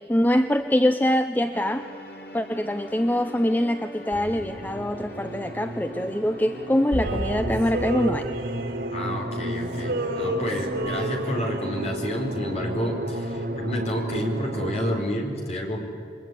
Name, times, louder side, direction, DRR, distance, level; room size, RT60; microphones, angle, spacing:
voice 1, 0.0-1.9 2.3-8.3, equal, 10° left, 9 dB, 0.6 m, -24 dB
sound 1, 1.5-7.3, left 1 dB, 60° left, 3.3 m, -42 dB
sound 2, 4.1-15.0, right 1 dB, 65° right, 2.5 m, -32 dB
Male singing, 7.0-9.4 9.7-11.9, right 1 dB, 85° right, 4.0 m, -32 dB
voice 2, 8.9-15.8, equal, 35° left, 1 dB, 4.7 m, -30 dB
28.0 x 22.5 x 9.6 m, 2.7 s
head